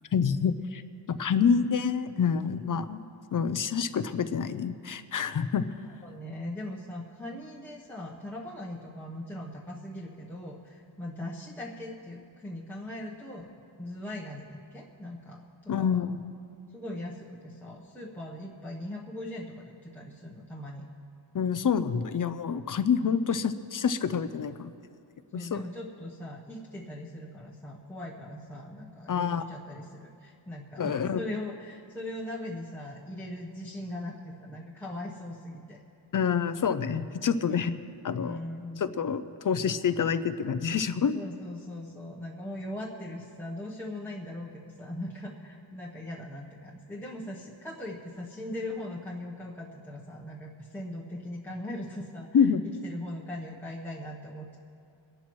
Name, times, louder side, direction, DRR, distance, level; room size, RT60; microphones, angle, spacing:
voice 1, 0.1-0.8 1.1-5.6 15.7-16.2 21.3-24.7 25.3-25.6 29.1-29.4 30.8-31.2 36.1-37.7 38.0-38.4 38.8-41.2 52.3-52.6, left 6 dB, 45° left, 12 dB, 0.4 m, -27 dB
voice 2, 6.0-16.0 16.7-20.9 25.3-35.8 37.5-37.8 38.2-38.8 41.1-54.6, left 1 dB, 5° left, -5 dB, 0.9 m, -40 dB
23.5 x 11.5 x 3.1 m, 2.4 s
wide cardioid pair, 150°, 48 cm